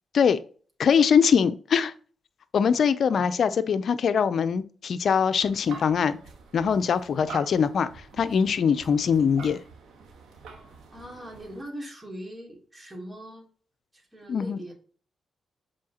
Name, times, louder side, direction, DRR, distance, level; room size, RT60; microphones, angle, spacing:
voice 1, 0.8-1.9 2.5-6.2 6.5-9.6 14.3-14.6, left 7 dB, 70° left, 0.6 m, -22 dB
sound 1, 5.4-11.6, right 4 dB, 85° right, 1.4 m, -46 dB
voice 2, 10.9-13.5 13.9-14.7, equal, 20° right, 3.1 m, -41 dB
7.5 x 4.3 x 2.9 m
cardioid pair, 60°, 0 cm